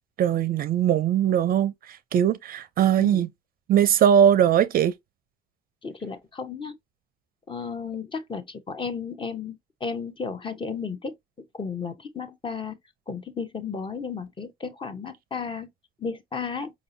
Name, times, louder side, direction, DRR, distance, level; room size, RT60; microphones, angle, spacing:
voice 1, 0.2-3.3 3.7-4.9, right 9 dB, 45° right, 0.5 m, -20 dB
voice 2, 5.8-6.7 7.5-11.1 11.5-12.8 13.1-15.7 16.0-16.7, left 5 dB, 25° left, 0.8 m, -33 dB
5.0 x 2.6 x 2.5 m
supercardioid pair, 90°, 21 cm